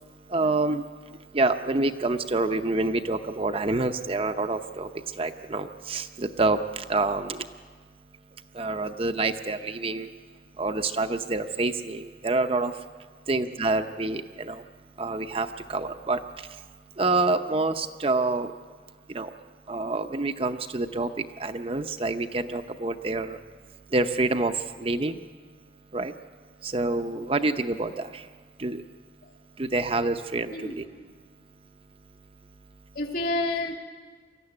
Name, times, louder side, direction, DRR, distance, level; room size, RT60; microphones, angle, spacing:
voice 1, 0.3-0.8 1.3-4.9 5.2-7.4 8.5-10.1 10.6-12.7 13.3-14.6 15.0-16.2 17.0-18.5 19.1-19.3 19.7-21.1 21.4-23.4 23.9-25.2 25.9-26.1 26.6-28.2 28.6-28.8 29.6-30.5, right 2 dB, 30° right, 7 dB, 0.7 m, -27 dB
voice 2, 32.9-33.8, left 2 dB, 50° left, 2 dB, 2.7 m, -29 dB
23.5 x 14.0 x 9.8 m, 1.5 s
head